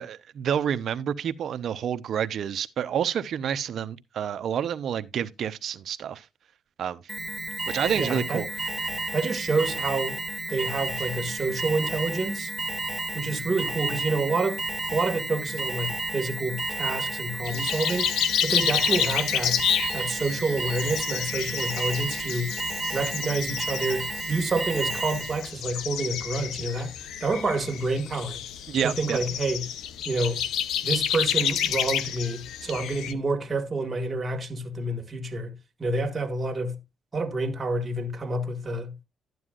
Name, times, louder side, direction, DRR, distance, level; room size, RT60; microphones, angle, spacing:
voice 1, 0.0-6.2 6.8-7.0 7.7-8.5 28.7-29.2, right 8 dB, 65° right, 0.8 m, -29 dB
Alarm, 7.1-25.5, right 2 dB, 10° right, 2.2 m, -32 dB
voice 2, 7.9-8.4 9.1-10.2 10.5-12.5 13.1-14.6 14.9-18.1 18.4-19.6 19.9-22.5 22.9-26.9 27.2-28.4 28.8-29.7 30.1-30.4 30.8-35.5 35.8-36.8 37.1-38.9, right 2 dB, 30° right, 1.9 m, -28 dB
sound 1, 17.4-33.1, left 9 dB, 85° left, 0.8 m, -30 dB
12.5 x 9.4 x 2.5 m
cardioid pair, 90°, 0 cm